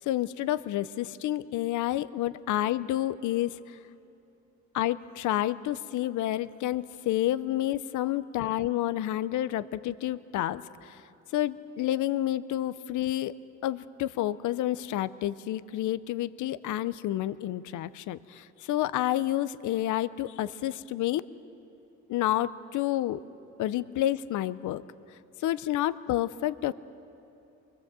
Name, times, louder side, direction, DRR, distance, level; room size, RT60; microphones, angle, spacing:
voice 1, 0.0-3.8 4.7-11.0 11.3-13.3 13.6-21.2 22.1-23.2 23.6-24.8 25.1-26.7, left 13 dB, 75° left, 15 dB, 0.6 m, -29 dB
24.0 x 22.0 x 7.6 m, 2.9 s
cardioid pair, 90°, 30 cm